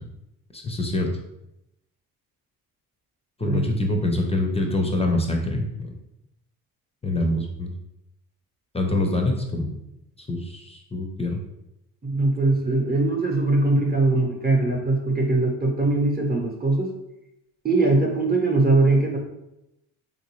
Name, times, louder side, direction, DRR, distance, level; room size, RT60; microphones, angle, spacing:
voice 1, 0.5-1.1 3.4-5.9 7.0-7.7 8.7-9.7 10.3-11.4, left 1 dB, 15° left, 3 dB, 0.5 m, -25 dB
voice 2, 12.0-16.9 17.6-19.2, right 2 dB, 25° right, 0 dB, 0.8 m, -21 dB
3.4 x 2.6 x 3.0 m, 0.87 s
supercardioid pair, 75°, 40 cm